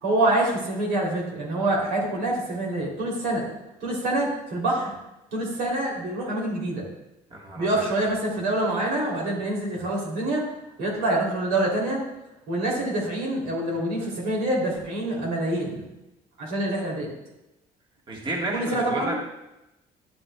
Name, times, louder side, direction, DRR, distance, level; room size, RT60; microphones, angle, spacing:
voice 1, 0.0-3.4 3.8-4.9 5.3-6.9 7.6-10.5 10.8-12.0 12.5-15.9 16.4-17.1 18.5-19.2, right 1 dB, 80° right, -2 dB, 2.9 m, -26 dB
voice 2, 7.3-7.7 18.1-19.2, right 2 dB, 30° right, -2 dB, 1.4 m, -31 dB
11.0 x 7.6 x 2.2 m, 0.92 s
cardioid pair, 110°, 17 cm